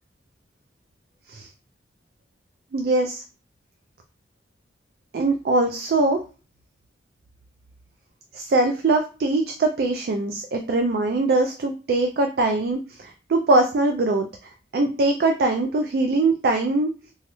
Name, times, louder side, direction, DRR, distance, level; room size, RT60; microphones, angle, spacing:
voice 1, 2.7-3.2 5.1-6.2 8.3-14.3 14.7-16.9, right 2 dB, 55° right, 4 dB, 0.3 m, -22 dB
3.0 x 2.3 x 2.9 m, 0.35 s
head